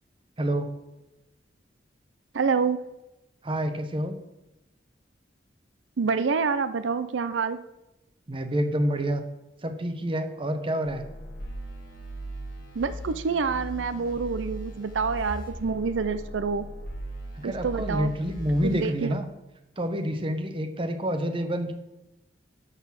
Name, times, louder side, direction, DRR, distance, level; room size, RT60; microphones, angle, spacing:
voice 1, 0.4-0.7 3.4-4.2 8.3-9.2 9.6-11.0 17.4-19.3 19.8-21.7, equal, 30° right, 7 dB, 0.9 m, -28 dB
voice 2, 2.3-2.8 6.0-7.6 12.8-16.6 17.4-18.1 18.6-19.1, right 5 dB, 85° right, 12 dB, 0.5 m, -27 dB
sound 1, 10.8-18.9, right 1 dB, 50° left, 1.9 m, -39 dB
11.5 x 4.1 x 7.4 m, 0.94 s
head